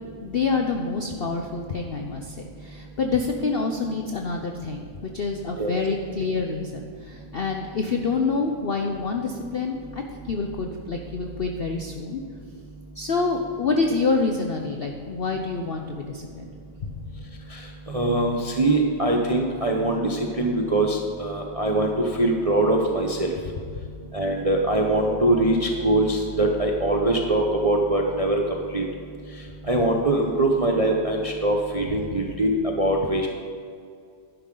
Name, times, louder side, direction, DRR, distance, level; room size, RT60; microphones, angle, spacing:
voice 1, 0.2-4.9 5.1-12.2 13.0-16.5 16.8-16.9 33.0-33.1, left 4 dB, 60° left, 3 dB, 0.6 m, -27 dB
voice 2, 17.9-21.9 22.2-23.3 24.1-28.4 28.7-28.8 29.7-33.3, right 1 dB, 35° right, 1 dB, 0.5 m, -22 dB
11.0 x 10.5 x 3.9 m, 2.3 s
omnidirectional pair, 1.8 m